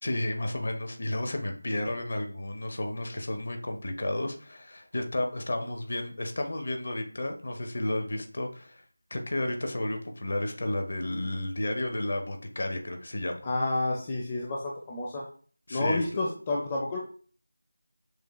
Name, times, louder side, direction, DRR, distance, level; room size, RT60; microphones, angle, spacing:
voice 1, 0.0-8.8 9.1-13.5 15.7-16.0, left 1 dB, 50° left, 4 dB, 0.8 m, -32 dB
voice 2, 13.4-15.2 15.7-17.0, left 2 dB, 20° left, -2 dB, 0.6 m, -30 dB
6.3 x 2.2 x 3.1 m, 0.42 s
figure-of-eight pair, 165°, 0 cm